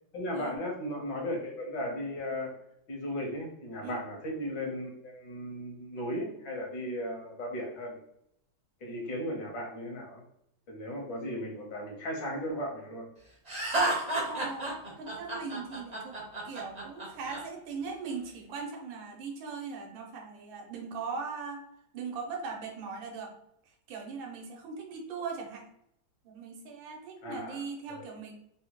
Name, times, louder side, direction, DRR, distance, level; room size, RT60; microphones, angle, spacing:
voice 1, 0.1-2.6 2.9-8.0 8.8-10.2 10.7-13.1 27.2-27.6 27.9-28.1, equal, 70° left, -1 dB, 1.6 m, -36 dB
Laughter, 13.5-17.4, right 2 dB, 40° right, 0.5 m, -31 dB
voice 2, 14.3-16.2 16.4-21.7 21.9-23.3 23.7-25.6 26.2-28.3, right 5 dB, 85° right, 2 dB, 1.5 m, -39 dB
4.1 x 2.1 x 2.9 m, 0.75 s
omnidirectional pair, 2.1 m